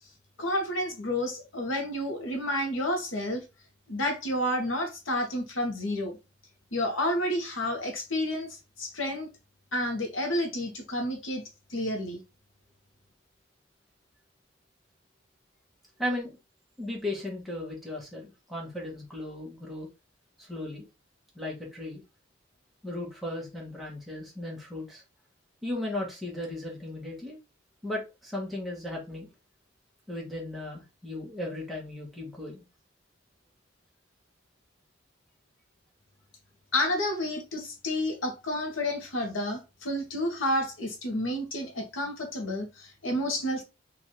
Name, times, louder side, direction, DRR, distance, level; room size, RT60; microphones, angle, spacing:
voice 1, 0.4-3.4 3.9-6.2 6.7-9.3 9.7-11.4 11.7-12.2 36.7-43.6, left 1 dB, 90° left, 1.3 m, -30 dB
voice 2, 16.0-16.4 16.8-19.9 20.4-20.9 21.3-22.0 22.8-25.0 25.6-27.4 27.8-29.3 30.1-32.6, left 1 dB, ahead, 1.3 m, -36 dB
4.0 x 2.7 x 3.1 m
head